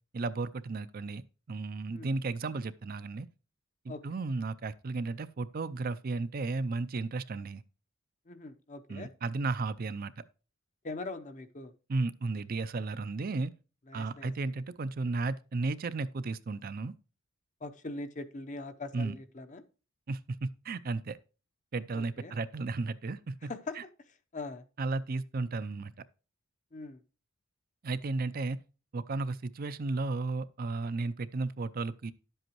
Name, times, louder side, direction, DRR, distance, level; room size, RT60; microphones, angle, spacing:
voice 1, 0.1-1.2 1.5-3.3 3.8-7.6 8.9-10.2 11.9-13.5 13.9-16.9 18.9-19.1 20.1-21.2 21.7-23.5 24.8-25.9 27.8-28.6 28.9-32.1, right 3 dB, 45° right, 0.4 m, -34 dB
voice 2, 8.3-9.1 10.8-11.7 13.9-14.5 17.6-19.6 21.9-22.3 23.4-23.9 24.3-24.6 26.7-27.0, left 2 dB, 35° left, 0.7 m, -42 dB
11.0 x 7.8 x 3.0 m
head